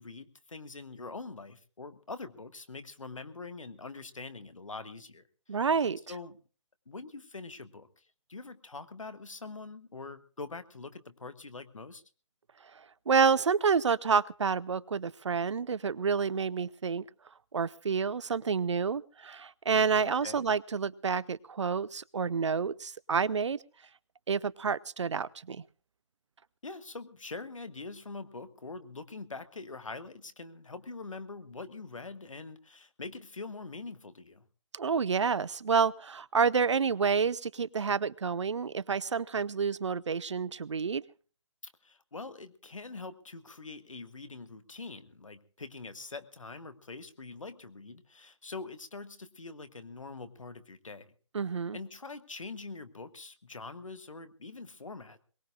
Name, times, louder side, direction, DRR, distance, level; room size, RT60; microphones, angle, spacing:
voice 1, 0.0-5.3 6.1-6.4 6.9-12.0 20.0-20.4 26.6-34.5 41.8-51.1 51.7-55.2, left 3 dB, 75° left, 10 dB, 1.7 m, -44 dB
voice 2, 5.5-6.0 12.8-17.0 17.5-23.6 24.3-25.6 34.7-41.0 51.3-51.8, right 5 dB, 60° right, 21 dB, 0.7 m, -29 dB
22.5 x 20.0 x 2.5 m, 0.39 s
figure-of-eight pair, 140°, 17 cm